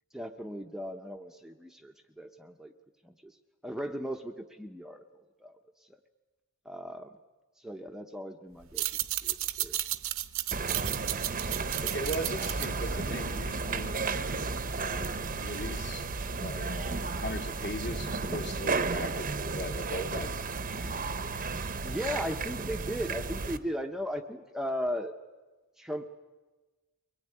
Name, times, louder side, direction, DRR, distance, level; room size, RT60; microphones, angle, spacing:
voice 1, 0.1-2.7 3.0-3.4 3.6-5.0 5.4-5.6 6.6-7.1 7.6-8.9 9.2-9.8 21.8-25.1 25.8-26.1, equal, ahead, 4 dB, 0.8 m, -37 dB
sound 1, 8.6-13.8, right 14 dB, 65° right, 0.8 m, -34 dB
sound 2, 10.5-23.6, right 4 dB, 40° right, 0.8 m, -33 dB
voice 2, 11.8-14.0 14.8-16.1 16.4-20.4, equal, 50° left, 3 dB, 2.3 m, -39 dB
23.0 x 18.5 x 9.7 m, 1.2 s
head